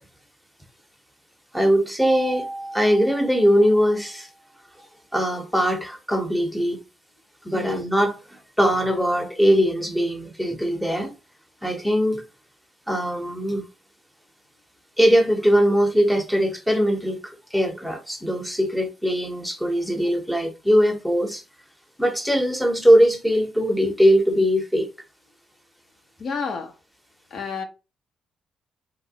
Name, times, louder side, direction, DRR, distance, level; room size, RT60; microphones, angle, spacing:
voice 1, 1.5-4.3 5.1-6.8 7.4-11.2 11.6-12.2 12.9-13.7 15.0-21.4 22.0-24.9, equal, ahead, 0.8 m, -21 dB
Mallet percussion, 2.0-4.3, right 2 dB, 30° right, 0.3 m, -35 dB
voice 2, 7.5-7.9 26.2-26.7 27.3-27.6, left 5 dB, 55° left, 0.6 m, -30 dB
3.0 x 2.9 x 2.8 m
cardioid pair, 90°, 0 cm